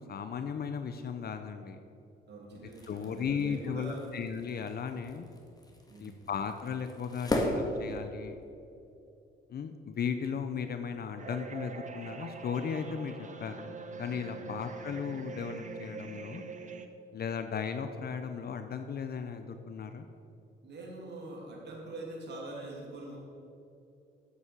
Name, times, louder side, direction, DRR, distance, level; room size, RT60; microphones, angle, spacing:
voice 1, 0.0-1.8 2.5-2.6 2.9-5.3 6.0-8.4 9.5-16.4 17.1-20.0, left 6 dB, 50° left, 8 dB, 0.7 m, -36 dB
voice 2, 2.3-4.1 5.9-6.2 14.3-14.5 20.6-23.2, right 2 dB, 60° right, -2 dB, 2.7 m, -43 dB
sound 1, 2.5-8.5, left 1 dB, 20° left, 1.9 m, -37 dB
sound 2, 11.2-16.9, right 4 dB, 40° right, 1.0 m, -44 dB
8.3 x 7.9 x 8.2 m, 2.7 s
cardioid pair, 90°, 20 cm